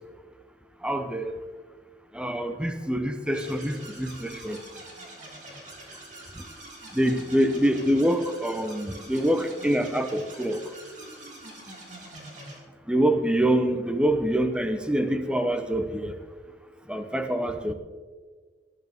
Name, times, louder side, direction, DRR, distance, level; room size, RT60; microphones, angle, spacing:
voice 1, 0.8-1.3 2.1-4.6 6.9-10.6 12.9-16.2 16.9-17.7, right 1 dB, 5° right, 8 dB, 0.8 m, -25 dB
sound 1, 3.3-12.6, right 1 dB, 45° right, 3.0 m, -45 dB
18.5 x 11.0 x 3.6 m, 1.5 s
head